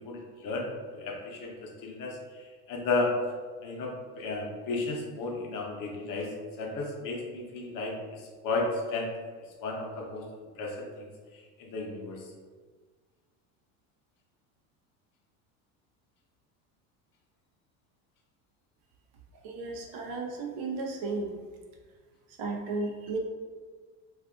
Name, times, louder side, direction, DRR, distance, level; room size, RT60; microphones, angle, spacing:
voice 1, 0.0-3.1 3.6-9.1 9.6-10.2 10.6-11.1 11.3-12.3, left 3 dB, 50° left, 0 dB, 0.8 m, -34 dB
voice 2, 19.4-21.3 22.4-23.2, right 3 dB, 55° right, 1 dB, 0.7 m, -34 dB
2.5 x 2.4 x 3.5 m, 1.5 s
supercardioid pair, 95°, 42 cm